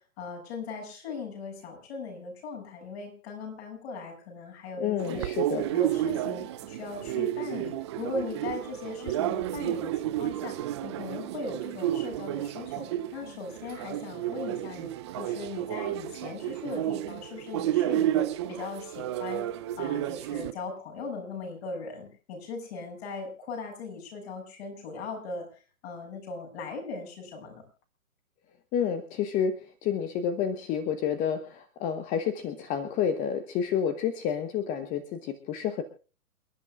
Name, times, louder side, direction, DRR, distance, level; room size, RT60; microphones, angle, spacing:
voice 1, 0.2-5.2 5.7-14.9 15.2-19.5 19.8-25.5 25.8-27.6, left 4 dB, 45° left, 2 dB, 7.1 m, -39 dB
voice 2, 4.8-5.7 28.7-35.8, left 8 dB, 20° left, 10 dB, 1.0 m, -29 dB
sound 1, 5.0-20.5, right 13 dB, 20° right, 0.6 m, -31 dB
28.5 x 10.5 x 2.4 m, 0.37 s
hypercardioid pair, 130°, 43 cm